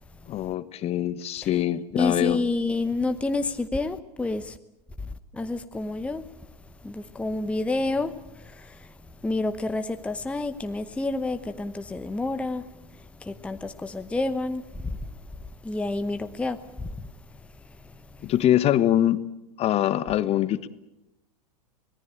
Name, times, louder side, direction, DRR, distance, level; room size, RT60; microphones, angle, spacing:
voice 1, 0.3-2.4 18.2-19.2 19.6-20.7, left 12 dB, 30° left, 1.1 m, -23 dB
voice 2, 2.0-4.6 5.0-6.3 6.8-8.9 9.2-12.7 12.9-15.1 15.6-17.0 17.8-18.3, left 2 dB, 5° left, 0.9 m, -29 dB
24.5 x 19.0 x 8.9 m
figure-of-eight pair, 95°, 20 cm